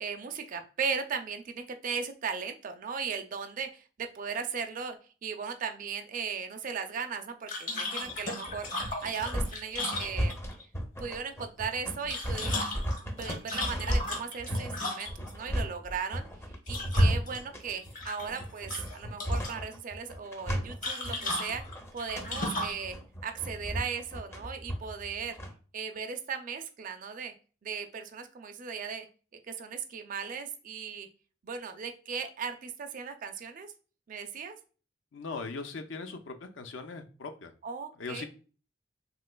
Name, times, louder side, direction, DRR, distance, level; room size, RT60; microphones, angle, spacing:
voice 1, 0.0-5.0 5.2-10.3 11.0-12.6 13.0-16.3 16.7-21.6 21.9-23.0 23.2-25.4 25.7-27.3 27.6-29.1 29.5-31.1 31.4-33.7 34.1-34.6 37.6-38.2, right 6 dB, 45° right, 7 dB, 0.4 m, -37 dB
sound 1, 7.5-10.6 11.9-15.3 16.7-17.4 17.7-18.4 18.7-19.6 20.8-22.8, left 2 dB, 45° left, 0.9 m, -36 dB
sound 2, 8.0-25.5, equal, 15° left, 0.5 m, -34 dB
voice 2, 35.1-37.5 38.0-38.3, left 4 dB, 80° left, 7 dB, 0.5 m, -39 dB
3.2 x 3.0 x 2.2 m, 0.37 s
head